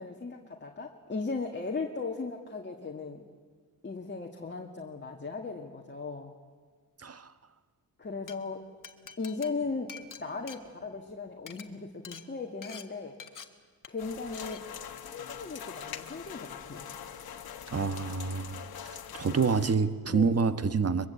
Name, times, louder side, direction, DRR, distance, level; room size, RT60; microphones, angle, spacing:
voice 1, 0.0-3.2 3.8-6.3 8.0-8.6 9.2-9.9 10.2-13.2 13.9-14.7 15.0-16.9 20.1-20.4, left 4 dB, 30° left, 1 dB, 2.0 m, -37 dB
Glass, 8.1-8.3 8.8-11.1 11.4-11.6 12.0-12.2 12.6-12.8 13.2-13.4 13.8-14.1 14.3-14.6, left 7 dB, 60° left, 1.6 m, -46 dB
sound 1, 14.0-19.8, left 8 dB, 75° left, 1.4 m, -43 dB
voice 2, 17.7-18.7 19.2-21.1, right 5 dB, 40° right, 11 dB, 1.3 m, -27 dB
23.0 x 22.5 x 8.3 m, 1.5 s
cardioid pair, 90°, 36 cm